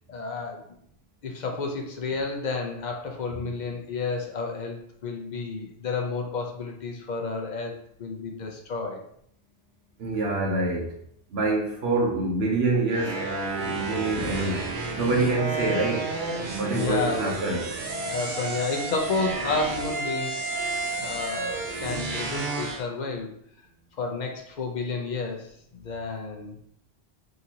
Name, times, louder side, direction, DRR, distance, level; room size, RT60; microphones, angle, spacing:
voice 1, 0.1-0.8 1.2-9.0 16.7-17.3 18.1-23.3 24.0-26.6, left 4 dB, 50° left, 2 dB, 0.6 m, -31 dB
voice 2, 10.0-11.0 11.3-14.7 15.0-16.2 16.6-17.8, right 2 dB, 75° right, 0 dB, 1.0 m, -26 dB
sound 1, 12.9-22.8, right 3 dB, 55° right, 0.7 m, -31 dB
3.8 x 2.7 x 2.8 m, 0.68 s
omnidirectional pair, 1.1 m